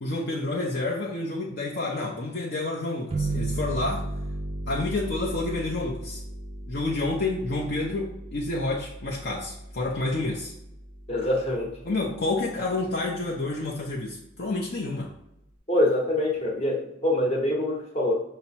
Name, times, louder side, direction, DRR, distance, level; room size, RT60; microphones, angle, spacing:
voice 1, 0.0-4.0 4.7-6.2 6.7-10.5 11.8-15.1, left 2 dB, 55° left, -4 dB, 0.6 m, -29 dB
sound 1, 3.1-12.4, right 2 dB, 25° right, 0.5 m, -35 dB
voice 2, 11.1-11.7 15.7-18.2, left 1 dB, 30° left, -2 dB, 1.0 m, -25 dB
5.6 x 2.0 x 4.2 m, 0.83 s
head